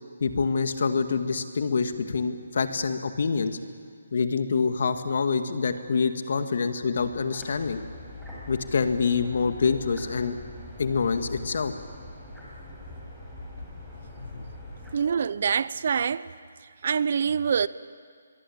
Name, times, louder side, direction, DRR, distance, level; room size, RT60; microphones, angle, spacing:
voice 1, 0.2-3.6 4.1-7.8 8.5-10.3 10.8-11.7 14.2-14.5, left 5 dB, 60° left, 2.1 m, -26 dB
sound 1, 6.9-14.9, left 1 dB, ahead, 6.0 m, -42 dB
voice 2, 14.9-16.3 16.8-17.7, right 6 dB, 50° right, 0.7 m, -25 dB
24.0 x 23.0 x 8.8 m
hypercardioid pair, 160°, 0 cm